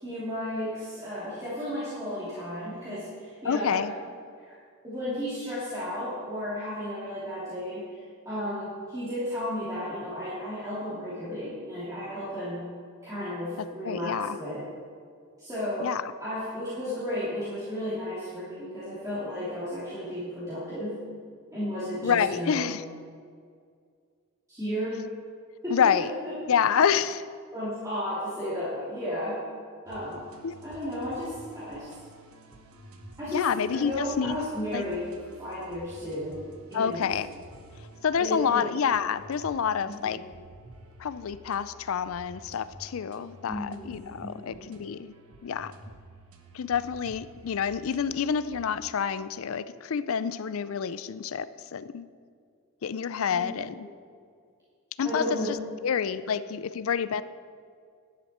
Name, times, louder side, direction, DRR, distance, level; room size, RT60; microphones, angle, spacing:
voice 1, 0.0-3.9 4.4-4.6 4.8-12.6 13.0-14.6 15.4-15.9 16.2-21.0 21.5-22.6 24.5-25.0 25.6-25.7 26.0-26.3 27.5-29.4 29.8-30.2 30.6-31.9 33.2-33.4 33.7-36.3 36.7-37.1 38.2-38.6 39.8-40.2 43.5-44.6 53.3-53.4 55.0-55.5 55.8-55.9, equal, 15° right, -12 dB, 2.8 m, -34 dB
voice 2, 3.4-3.9 13.8-14.4 15.8-16.1 22.0-22.8 25.7-26.1 26.5-27.3 30.4-30.6 33.3-34.4 34.7-34.8 36.7-37.3 38.0-40.2 41.0-45.1 45.4-45.7 46.5-52.1 52.8-53.9 55.0-55.6 55.8-57.2, left 7 dB, 70° left, 15 dB, 0.4 m, -28 dB
sound 1, 29.9-48.6, right 1 dB, 80° right, 1.1 m, -51 dB
11.5 x 10.5 x 4.3 m, 2.1 s
head